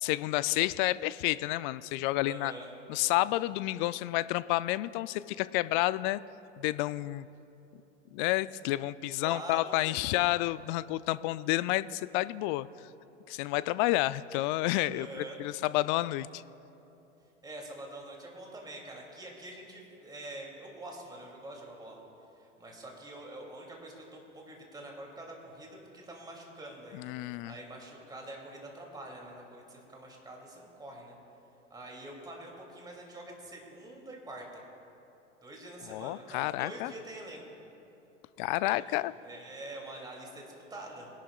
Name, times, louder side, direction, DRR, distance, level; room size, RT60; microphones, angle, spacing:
voice 1, 0.0-2.5 2.9-6.2 6.6-7.3 8.1-12.7 13.3-16.4 26.9-27.5 35.9-36.9 38.4-39.1, left 17 dB, 45° left, 17 dB, 0.4 m, -30 dB
voice 2, 2.2-2.7 9.1-10.2 14.9-15.4 17.4-22.0 22.4-25.7 26.0-31.2 31.7-34.6 35.4-37.5 38.6-38.8 39.2-41.1, right 1 dB, 10° right, -1 dB, 2.7 m, -45 dB
23.0 x 11.5 x 2.4 m, 2.9 s
hypercardioid pair, 90°, 37 cm